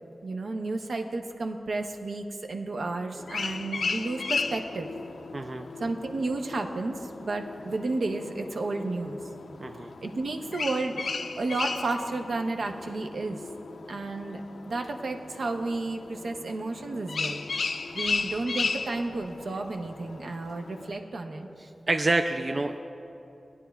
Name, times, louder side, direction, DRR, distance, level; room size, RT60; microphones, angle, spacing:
voice 1, 0.2-4.9 5.8-9.2 10.0-11.0 11.4-13.4 13.9-14.4 14.7-17.4 17.9-21.5, right 3 dB, 75° right, 4 dB, 0.6 m, -32 dB
sound 1, 3.2-20.9, left 4 dB, 90° left, 0.4 m, -36 dB
voice 2, 5.3-5.7 9.6-9.9 21.9-22.8, right 2 dB, 40° right, 5 dB, 0.3 m, -27 dB
18.5 x 9.7 x 2.3 m, 2.8 s
wide cardioid pair, 95°, 0 cm